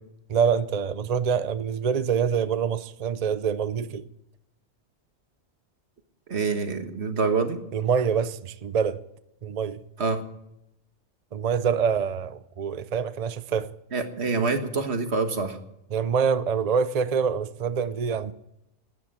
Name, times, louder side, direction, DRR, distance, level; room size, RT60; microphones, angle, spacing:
voice 1, 0.3-4.1 7.7-9.0 9.4-9.8 11.3-13.7 15.9-18.3, right 6 dB, 45° right, 0.6 m, -25 dB
voice 2, 6.3-7.6 10.0-10.2 13.9-15.6, right 4 dB, 70° right, 1.7 m, -26 dB
12.5 x 10.5 x 10.0 m
omnidirectional pair, 1.2 m